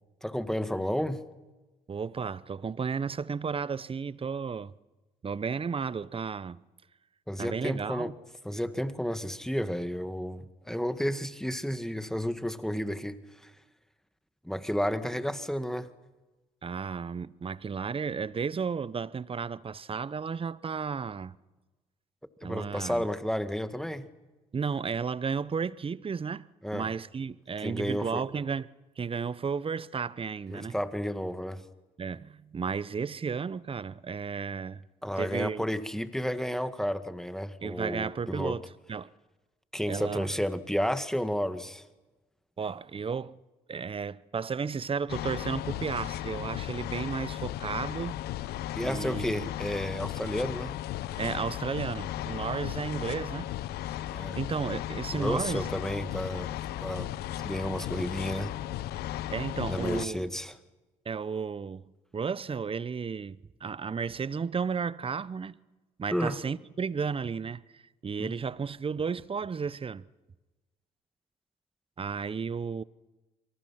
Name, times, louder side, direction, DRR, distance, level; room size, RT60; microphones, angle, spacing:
voice 1, 0.2-1.2 7.3-8.1 8.4-13.5 14.4-15.9 22.4-24.1 26.6-26.9 27.6-28.2 30.5-31.7 35.0-38.6 39.7-41.9 48.8-50.8 54.1-54.4 55.1-56.5 56.8-57.1 57.4-58.5 59.7-60.6 66.1-66.4 68.2-68.3, equal, 5° left, 2.0 m, -32 dB
voice 2, 1.9-4.7 5.2-6.6 7.4-8.1 16.6-21.3 22.4-23.1 24.5-26.5 26.7-28.7 29.0-30.7 32.0-34.8 35.2-35.6 37.6-39.1 39.9-40.3 42.6-43.4 43.7-48.2 48.8-49.5 51.2-53.5 54.4-55.7 59.3-60.3 61.0-61.8 62.1-65.6 66.0-70.0 72.0-72.8, right 5 dB, 30° right, 0.9 m, -33 dB
sound 1, 45.1-60.1, left 13 dB, 65° left, 1.0 m, -35 dB
27.5 x 25.5 x 5.9 m
hypercardioid pair, 50°, 17 cm